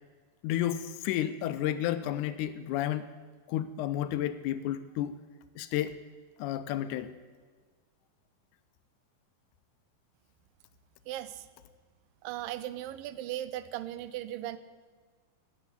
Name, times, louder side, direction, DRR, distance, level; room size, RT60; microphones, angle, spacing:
voice 1, 0.4-3.1 3.5-5.2 5.6-6.0 6.4-7.1, left 12 dB, 85° left, 12 dB, 1.8 m, -31 dB
voice 2, 11.1-11.5 12.2-14.6, right 13 dB, 80° right, 14 dB, 2.4 m, -37 dB
12.0 x 8.3 x 9.7 m, 1.5 s
omnidirectional pair, 4.1 m